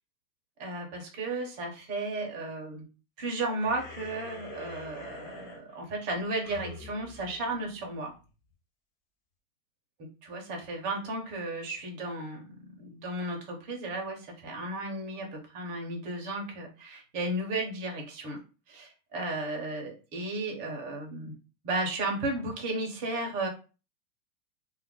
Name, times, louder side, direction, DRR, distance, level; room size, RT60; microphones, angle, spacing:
voice 1, 0.6-2.8 3.2-8.1 10.2-18.4 18.7-21.3 21.6-23.5, right 2 dB, 20° right, 1 dB, 0.4 m, -34 dB
sound 1, 3.6-8.3, left 3 dB, 30° left, 0.7 m, -46 dB
2.3 x 2.1 x 3.5 m, 0.33 s
hypercardioid pair, 145°, 45 cm